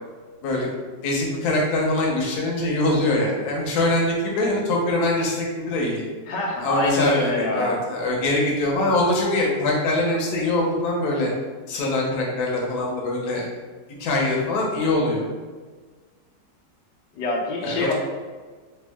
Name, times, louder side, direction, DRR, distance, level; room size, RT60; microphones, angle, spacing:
voice 1, 1.0-6.0 6.6-11.3 11.7-13.5 14.0-15.2 17.6-17.9, left 2 dB, 70° left, -2 dB, 1.2 m, -23 dB
voice 2, 6.3-7.8 17.1-17.9, left 2 dB, 90° left, -2 dB, 1.3 m, -25 dB
3.4 x 2.3 x 3.4 m, 1.4 s
omnidirectional pair, 1.8 m